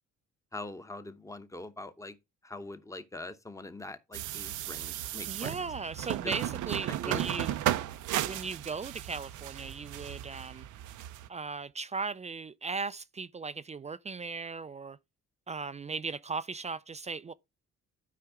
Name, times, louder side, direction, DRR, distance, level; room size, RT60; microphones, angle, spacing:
voice 1, 0.5-2.2 2.4-5.6 6.2-6.4 6.9-7.2, left 2 dB, 10° left, 0.9 m, -43 dB
washing hands, 4.1-11.3, right 13 dB, 80° right, 0.6 m, -35 dB
voice 2, 5.3-7.5 8.2-10.7 11.3-15.0 15.5-17.3, right 4 dB, 25° right, 0.3 m, -37 dB
11.5 x 4.7 x 3.5 m
cardioid pair, 90°, 30 cm